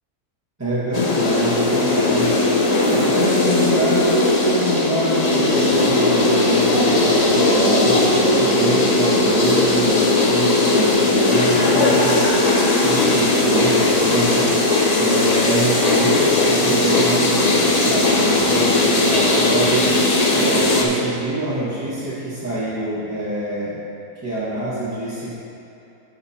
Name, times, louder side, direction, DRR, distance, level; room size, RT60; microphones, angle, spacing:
voice 1, 0.6-2.4 2.7-12.3 12.8-14.5 15.0-19.9 20.3-23.8 24.2-25.3, right 1 dB, 10° right, -13 dB, 1.4 m, -25 dB
sound 1, 0.9-20.8, left 2 dB, 35° left, 0.7 m, -17 dB
14.0 x 5.4 x 2.8 m, 2.8 s
omnidirectional pair, 1.6 m